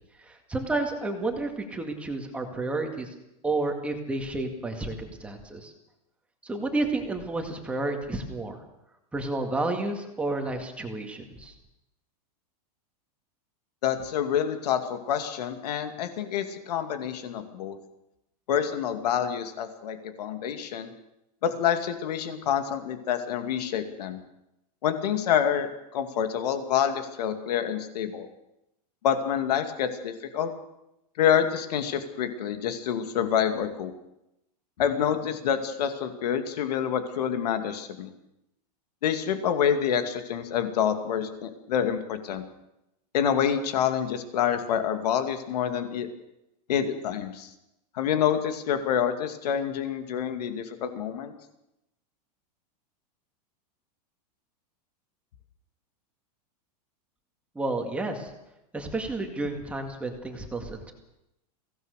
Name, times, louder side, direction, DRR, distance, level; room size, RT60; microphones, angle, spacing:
voice 1, 0.3-3.1 3.4-5.7 6.4-8.6 9.1-11.5 57.6-58.3 58.7-60.9, right 2 dB, 5° right, 3 dB, 2.0 m, -31 dB
voice 2, 13.8-17.8 18.5-20.9 21.4-24.2 24.8-28.3 29.0-30.5 31.2-33.9 34.8-38.1 39.0-42.4 43.1-46.1 46.7-47.5 47.9-51.3, left 8 dB, 75° left, 8 dB, 2.5 m, -27 dB
23.5 x 17.0 x 6.6 m, 0.87 s
supercardioid pair, 175°, 21 cm